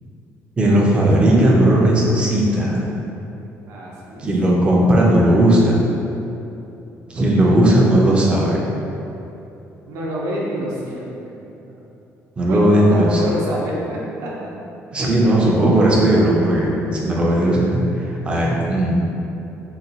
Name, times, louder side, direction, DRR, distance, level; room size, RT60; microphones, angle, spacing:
voice 1, 0.6-2.8 4.2-5.8 7.1-8.6 12.4-13.2 14.9-17.8 18.2-19.0, right 1 dB, 20° right, -3 dB, 0.4 m, -16 dB
voice 2, 3.7-4.3 4.8-4.9 9.9-11.3 11.7-11.8 12.5-14.5, right 1 dB, 65° right, -4 dB, 0.6 m, -27 dB
3.8 x 2.2 x 2.8 m, 2.9 s
cardioid pair, 175°, 5 cm